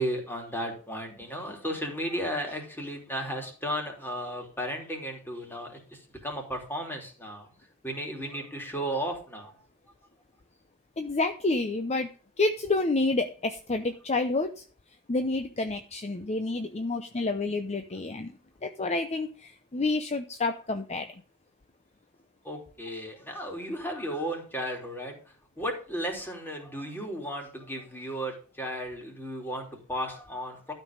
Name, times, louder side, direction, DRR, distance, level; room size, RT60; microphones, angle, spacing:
voice 1, 0.0-7.5 7.8-9.5 22.4-25.2 25.6-30.7, equal, 10° left, 1 dB, 3.1 m, -34 dB
voice 2, 11.0-12.1 12.4-14.6 15.1-18.3 18.6-21.2, left 2 dB, 30° left, 8 dB, 0.7 m, -29 dB
12.5 x 5.4 x 5.3 m, 0.40 s
head